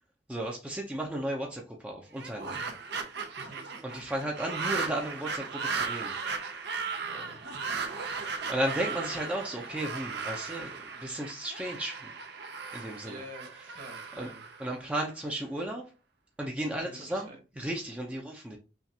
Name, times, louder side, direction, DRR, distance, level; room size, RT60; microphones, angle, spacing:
voice 1, 0.3-2.6 3.8-6.2 8.5-12.1 12.7-13.2 14.2-14.3 14.6-15.8 16.4-17.3 17.6-18.6, right 1 dB, 5° right, -1 dB, 0.7 m, -34 dB
sound 1, 2.1-15.3, right 5 dB, 65° right, 0.9 m, -37 dB
voice 2, 3.4-3.7 7.0-7.4 13.0-14.4 16.7-17.4 18.1-18.3, right 1 dB, 50° right, 2 dB, 1.7 m, -47 dB
5.8 x 2.5 x 2.8 m, 0.32 s
head